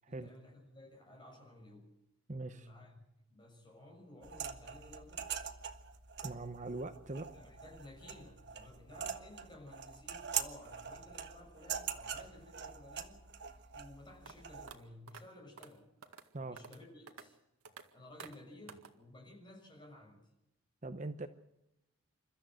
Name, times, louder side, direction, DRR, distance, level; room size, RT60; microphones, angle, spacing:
voice 1, 0.1-1.9 2.4-3.0 3.3-5.5 7.3-13.2 13.7-15.9 16.3-17.4 17.9-20.2, left 1 dB, 20° left, 1 dB, 6.5 m, -55 dB
voice 2, 2.3-2.7 6.2-7.3 16.3-16.6 20.8-21.3, right 2 dB, 35° right, 9 dB, 0.9 m, -41 dB
sound 1, 4.2-14.7, right 8 dB, 50° right, 1.5 m, -44 dB
sound 2, 14.2-14.3 14.7-14.8 15.1-15.2 15.6-15.7 16.0-16.3 16.6-16.8 17.1-17.2 17.6-17.8 18.2-18.4 18.7-18.9, right 5 dB, 85° right, 1.9 m, -50 dB
29.0 x 13.5 x 7.8 m, 0.89 s
head